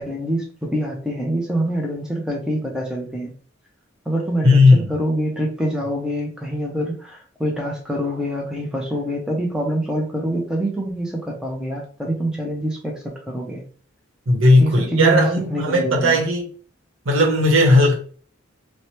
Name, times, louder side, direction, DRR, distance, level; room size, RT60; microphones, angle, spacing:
voice 1, 0.0-3.3 4.1-13.6 14.6-16.2, right 1 dB, 5° right, 0.5 m, -25 dB
voice 2, 4.4-4.9 14.3-16.5 17.0-17.9, left 1 dB, 75° right, 0.9 m, -15 dB
3.0 x 2.1 x 2.9 m
head